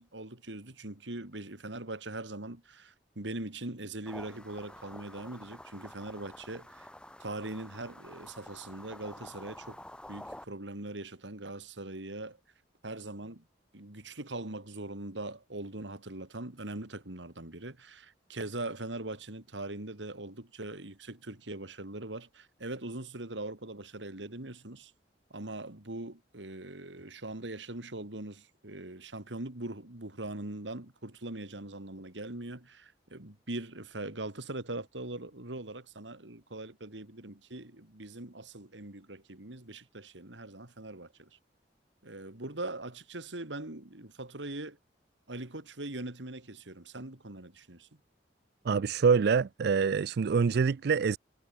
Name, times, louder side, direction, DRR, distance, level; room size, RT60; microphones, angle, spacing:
voice 1, 0.0-6.9 7.2-9.8 10.1-12.4 12.8-13.5 13.7-24.9 25.3-41.4 42.0-44.8 45.3-47.9, right 2 dB, 80° right, 2.9 m, -41 dB
sound 1, 4.1-10.5, left 1 dB, 5° left, 2.6 m, -49 dB
voice 2, 48.6-51.2, right 5 dB, 60° right, 0.4 m, -25 dB
head